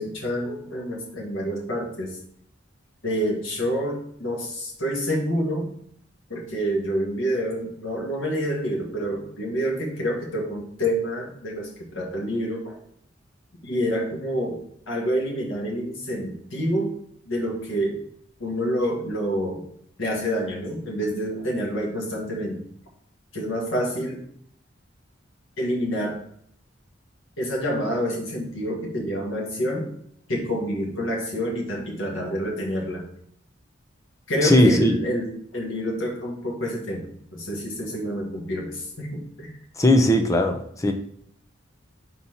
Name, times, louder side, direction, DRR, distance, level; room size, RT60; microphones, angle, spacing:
voice 1, 0.0-2.2 3.0-5.7 6.3-12.8 13.6-14.6 14.9-16.9 17.2-18.0 18.4-19.6 20.0-22.6 23.3-24.2 25.6-26.2 27.4-29.9 30.3-33.0 34.3-39.5, equal, 85° left, -1 dB, 1.7 m, -27 dB
voice 2, 34.4-34.9 39.8-40.9, left 1 dB, 15° left, 5 dB, 0.6 m, -18 dB
4.3 x 4.1 x 5.5 m, 0.66 s
head